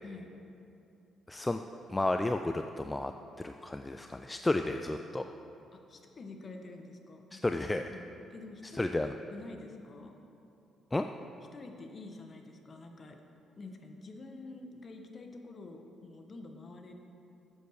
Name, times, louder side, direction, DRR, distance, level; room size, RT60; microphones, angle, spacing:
voice 1, 1.3-1.6 1.9-3.1 3.4-5.2 7.3-7.9 8.7-9.1 10.9-11.1, left 2 dB, 15° left, 7 dB, 0.4 m, -32 dB
voice 2, 5.7-7.4 7.8-10.2 11.5-13.2 13.6-16.9, left 2 dB, 40° left, 4 dB, 1.2 m, -48 dB
8.1 x 7.9 x 6.4 m, 2.7 s
cardioid pair, 85°, 0 cm